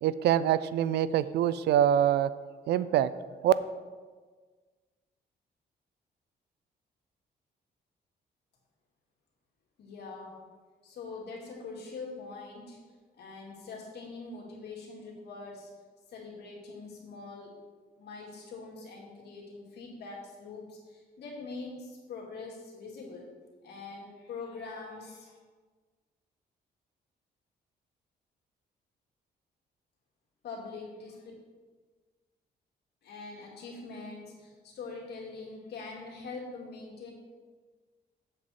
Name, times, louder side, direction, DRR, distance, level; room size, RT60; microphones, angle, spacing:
voice 1, 0.0-2.3 2.7-3.1 3.4-3.5, right 11 dB, 85° right, 16 dB, 0.4 m, -24 dB
voice 2, 9.8-10.4 10.8-12.8 13.1-15.7 16.1-17.6 18.0-23.3 23.6-25.4 30.4-31.3 33.0-37.1, left 4 dB, 80° left, -2 dB, 2.3 m, -43 dB
7.6 x 7.6 x 4.2 m, 1.4 s
cardioid pair, 115°, 17 cm